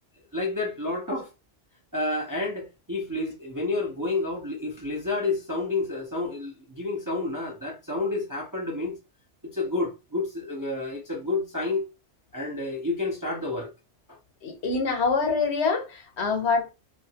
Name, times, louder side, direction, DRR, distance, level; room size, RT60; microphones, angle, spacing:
voice 1, 0.3-1.3 1.9-9.0 9.5-11.8 12.3-13.7 14.1-14.2, left 3 dB, 25° right, 0.5 m, -29 dB
voice 2, 14.4-16.7, left 4 dB, 65° left, 1.0 m, -25 dB
2.7 x 2.5 x 2.8 m
omnidirectional pair, 1.2 m